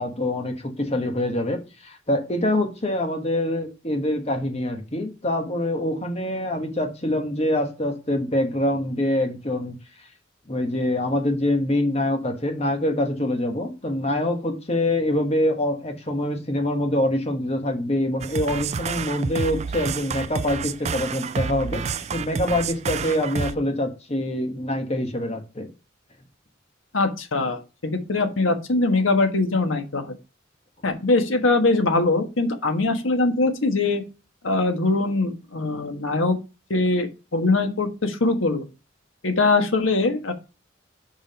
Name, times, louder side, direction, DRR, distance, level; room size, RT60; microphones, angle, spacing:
voice 1, 0.0-9.8 10.5-25.7, left 1 dB, 35° left, 1.4 m, -25 dB
sound 1, 18.2-23.6, right 5 dB, 35° right, 0.3 m, -29 dB
voice 2, 26.9-30.1 30.8-34.0 34.4-36.4 36.7-38.6 39.2-40.3, left 3 dB, 90° left, 1.4 m, -22 dB
5.4 x 5.0 x 5.1 m
head